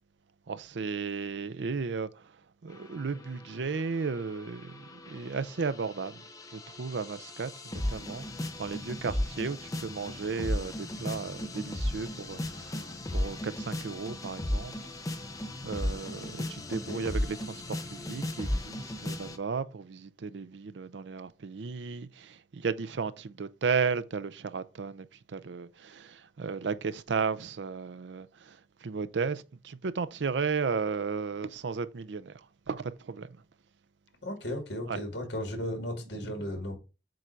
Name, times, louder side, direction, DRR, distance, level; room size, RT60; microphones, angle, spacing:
voice 1, 0.5-2.3 2.6-6.2 6.5-8.3 8.6-14.7 15.1-33.3 34.9-35.0 36.2-36.5, right 5 dB, 90° right, 0.5 m, -34 dB
sound 1, 2.7-19.4, left 1 dB, 20° left, 0.7 m, -36 dB
voice 2, 16.7-17.0 34.2-36.7, left 1 dB, 75° left, 2.1 m, -35 dB
7.7 x 2.6 x 5.6 m
head